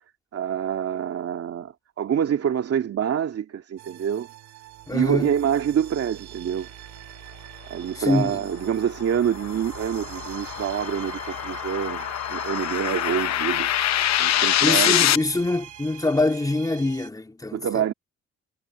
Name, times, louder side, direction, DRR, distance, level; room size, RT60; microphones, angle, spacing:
voice 1, 0.3-4.3 4.9-6.7 7.7-13.7 14.2-15.1 17.5-17.9, right 9 dB, 55° right, 2.2 m, -26 dB
sound 1, 3.8-17.1, right 12 dB, 90° right, 3.6 m, -43 dB
voice 2, 4.9-5.3 7.9-8.4 14.6-17.8, left 2 dB, 10° left, 2.8 m, -24 dB
sound 2, 8.3-15.2, left 12 dB, 65° left, 0.8 m, -25 dB
cardioid pair, 105°, 29 cm